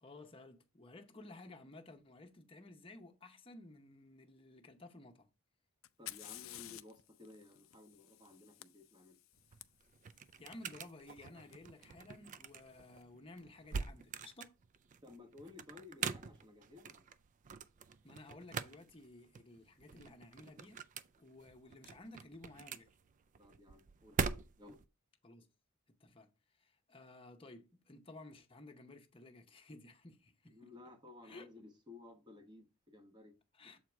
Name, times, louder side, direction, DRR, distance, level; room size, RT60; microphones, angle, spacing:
voice 1, 0.0-5.3 10.4-14.5 18.0-20.8 21.2-22.9 25.2-25.5 26.0-26.3 26.6-30.7 31.2-31.5 33.5-33.8, left 2 dB, 25° left, 0.8 m, -55 dB
Fire, 5.8-9.6 11.5-11.6 12.5-12.9, left 15 dB, 65° left, 0.4 m, -52 dB
voice 2, 6.0-9.2 15.0-17.0 23.4-24.2 24.6-24.8 30.5-33.4 33.6-33.8, left 3 dB, 20° right, 1.1 m, -56 dB
sound 1, 9.3-24.9, right 6 dB, 35° right, 0.3 m, -44 dB
7.2 x 4.6 x 3.5 m
head